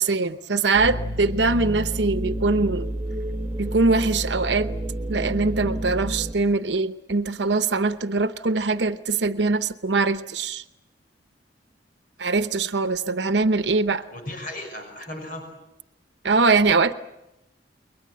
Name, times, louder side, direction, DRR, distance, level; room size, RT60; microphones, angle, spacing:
voice 1, 0.0-2.9 3.6-4.7 5.1-10.6 12.2-14.0 16.2-16.9, right 3 dB, 75° right, 10 dB, 0.9 m, -22 dB
sound 1, 0.8-6.3, right 1 dB, 10° right, 1.3 m, -30 dB
voice 2, 14.1-15.4, left 1 dB, 55° left, 4 dB, 6.0 m, -36 dB
29.5 x 22.0 x 7.7 m, 0.94 s
head